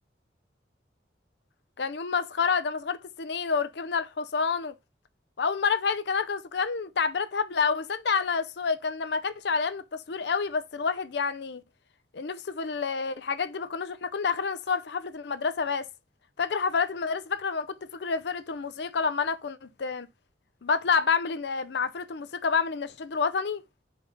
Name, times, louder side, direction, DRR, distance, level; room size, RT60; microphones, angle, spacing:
voice 1, 1.8-4.8 5.4-11.6 12.1-15.9 16.4-20.1 20.6-23.6, left 5 dB, 70° left, 0.5 m, -28 dB
5.2 x 3.9 x 4.9 m
head